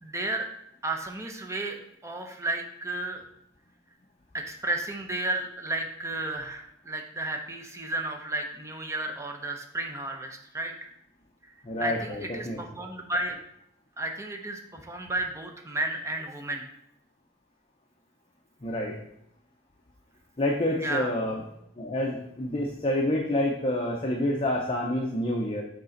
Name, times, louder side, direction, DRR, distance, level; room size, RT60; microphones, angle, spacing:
voice 1, 0.0-0.5 0.8-1.8 2.0-3.2 4.3-10.9 11.8-13.4 14.0-16.7 20.8-21.1, right 2 dB, 15° right, 3 dB, 0.7 m, -33 dB
voice 2, 11.6-12.6 18.6-18.9 20.4-21.4 21.8-25.6, left 1 dB, 30° left, 0 dB, 0.7 m, -28 dB
6.7 x 4.2 x 3.9 m, 0.76 s
head